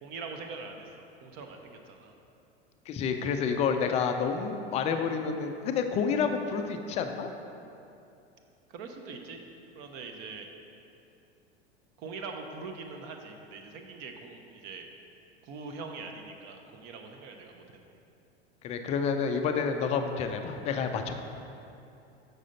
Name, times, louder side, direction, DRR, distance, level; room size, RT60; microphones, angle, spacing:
voice 1, 0.0-2.1 8.7-9.4 9.7-10.5 12.0-14.9 15.4-17.8, right 4 dB, 40° right, 4 dB, 0.8 m, -43 dB
voice 2, 2.9-7.3 18.6-21.3, left 6 dB, 20° left, 6 dB, 0.3 m, -29 dB
6.7 x 6.2 x 3.9 m, 2.7 s
figure-of-eight pair, 80°, 33 cm